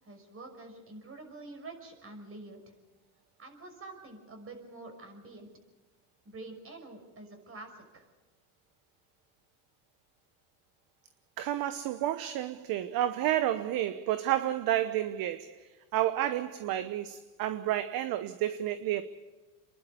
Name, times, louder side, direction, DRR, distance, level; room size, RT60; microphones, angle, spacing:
voice 1, 0.0-2.7 3.4-5.5 6.2-8.1, right 2 dB, 30° right, 5.8 m, -47 dB
voice 2, 11.4-15.6 15.9-19.0, right 12 dB, 50° right, 1.0 m, -30 dB
28.0 x 11.5 x 8.6 m
supercardioid pair, 115°, 45 cm